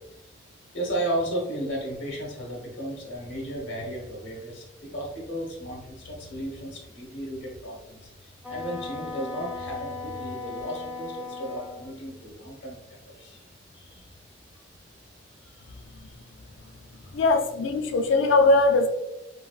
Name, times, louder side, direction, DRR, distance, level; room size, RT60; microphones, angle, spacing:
voice 1, 0.7-8.1 8.5-12.8 13.1-13.4 13.8-14.0 17.0-17.1, right 1 dB, 75° left, 0 dB, 0.9 m, -34 dB
Wind instrument woodwind instrument, 8.4-11.9, left 3 dB, 5° right, 0.4 m, -37 dB
voice 2, 17.1-18.9, left 3 dB, 90° left, 6 dB, 0.4 m, -20 dB
4.0 x 2.2 x 2.4 m, 0.90 s
head